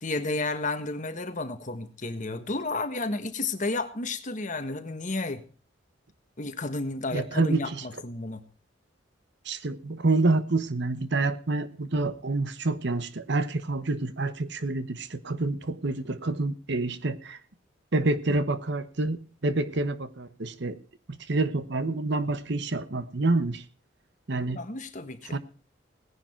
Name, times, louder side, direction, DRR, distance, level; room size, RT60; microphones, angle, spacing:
voice 1, 0.0-5.4 6.4-8.4 24.5-25.4, left 2 dB, 40° left, 9 dB, 1.5 m, -32 dB
voice 2, 7.1-7.8 9.4-17.4 17.9-20.8 21.1-23.6 24.3-24.6 25.3-25.4, right 2 dB, 60° right, 14 dB, 1.0 m, -28 dB
17.5 x 10.5 x 4.4 m, 0.39 s
head